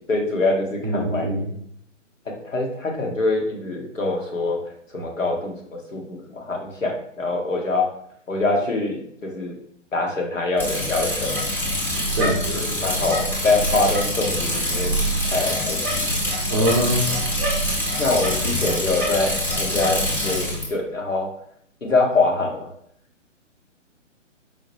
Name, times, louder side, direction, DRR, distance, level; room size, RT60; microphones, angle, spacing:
voice 1, 0.1-1.3 2.4-4.6 4.9-5.6 5.9-7.9 8.3-9.5 9.9-11.4 12.6-15.0 15.3-16.1 18.0-21.3 21.8-22.7, left 3 dB, 80° left, 0 dB, 1.3 m, -24 dB
voice 2, 0.8-1.5 12.2-12.7 16.5-17.1, equal, 20° right, -1 dB, 0.5 m, -22 dB
Bicycle, 10.6-20.6, equal, 5° left, 0.8 m, -24 dB
4.7 x 2.2 x 3.0 m, 0.67 s
figure-of-eight pair, 130°, 38 cm